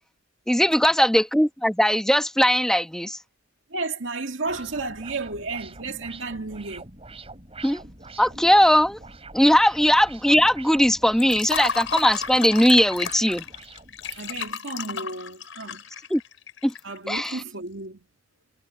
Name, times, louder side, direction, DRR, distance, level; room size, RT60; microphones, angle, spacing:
voice 1, 0.5-3.2 7.6-7.8 8.2-9.0 9.3-13.4 16.1-16.2 16.6-16.7 17.1-17.4, equal, 5° left, 1.2 m, -19 dB
voice 2, 3.7-6.9 14.1-15.8 16.8-18.0, right 3 dB, 80° right, 2.1 m, -32 dB
sound 1, 4.4-14.5, right 3 dB, 30° right, 7.9 m, -44 dB
Liquid, 11.2-17.3, left 6 dB, 85° left, 4.8 m, -33 dB
head